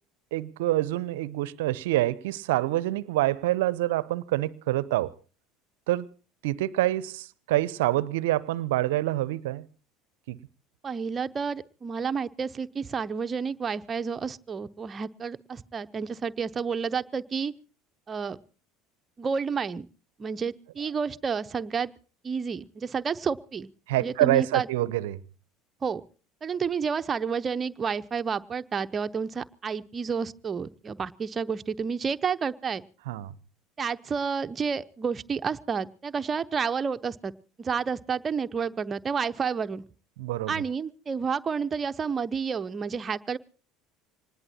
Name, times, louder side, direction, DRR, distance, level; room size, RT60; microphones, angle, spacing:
voice 1, 0.3-5.1 5.9-6.1 6.4-9.7 10.3-10.4 23.9-25.2 33.1-33.3 40.2-40.6, right 16 dB, 70° right, 0.7 m, -26 dB
voice 2, 10.8-17.5 18.1-18.4 19.2-19.9 20.2-21.9 22.2-23.7 24.0-24.7 25.8-26.0 26.4-32.8 33.8-37.3 37.6-39.8 40.5-43.4, right 6 dB, 30° right, 0.8 m, -30 dB
25.0 x 20.0 x 2.8 m
hypercardioid pair, 70°, 0 cm